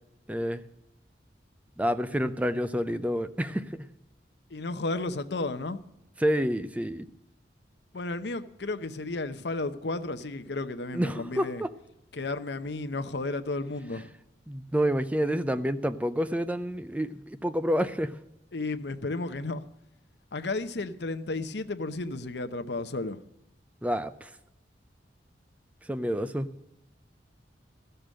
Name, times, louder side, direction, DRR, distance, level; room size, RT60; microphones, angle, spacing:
voice 1, 0.3-0.6 1.8-3.9 6.2-7.1 10.9-11.7 14.5-18.1 23.8-24.3 25.9-26.5, equal, 10° right, 0.5 m, -28 dB
voice 2, 4.5-5.8 7.9-11.6 12.1-14.1 18.5-19.6 20.3-23.2, left 2 dB, 65° left, 0.8 m, -33 dB
14.0 x 6.8 x 7.6 m
head